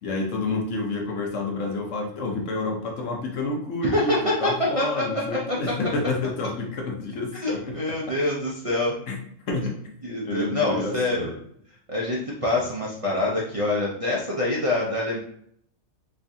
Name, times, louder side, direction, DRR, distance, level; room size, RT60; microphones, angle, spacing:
voice 1, 0.0-8.2 9.1-9.2 9.5-9.9 10.2-11.4, left 2 dB, 70° left, 1 dB, 1.2 m, -29 dB
voice 2, 3.8-5.1 5.3-5.6 7.3-8.9 10.0-11.3 11.9-15.2, left 2 dB, 40° right, -6 dB, 0.5 m, -25 dB
3.5 x 3.3 x 2.7 m, 0.66 s
omnidirectional pair, 1.3 m